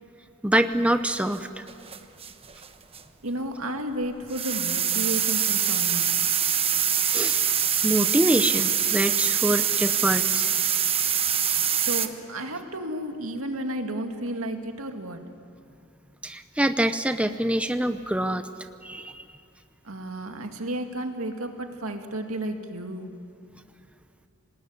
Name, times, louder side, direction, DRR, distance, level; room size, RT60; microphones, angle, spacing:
voice 1, 0.4-1.6 7.1-7.5 7.8-10.5 16.2-18.4 18.8-19.2, right 1 dB, 5° right, 9 dB, 0.6 m, -25 dB
sound 1, 1.3-1.4 1.7-2.7 2.9-3.0 4.2-12.1, right 8 dB, 25° right, 1.1 m, -24 dB
voice 2, 3.2-6.2 11.8-15.2 19.8-23.1, right 1 dB, 80° right, 4 dB, 2.3 m, -32 dB
27.0 x 19.0 x 9.8 m, 2.6 s
head